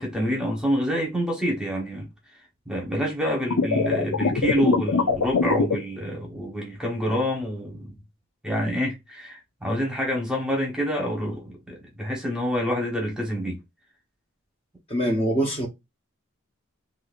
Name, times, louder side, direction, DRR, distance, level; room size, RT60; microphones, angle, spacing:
voice 1, 0.0-2.1 2.7-8.0 8.4-13.6, equal, 5° right, 1.0 m, -27 dB
sound 1, 3.5-5.8, left 4 dB, 80° left, 0.6 m, -22 dB
voice 2, 14.9-15.7, right 1 dB, 25° left, 0.9 m, -23 dB
4.0 x 2.7 x 2.5 m
head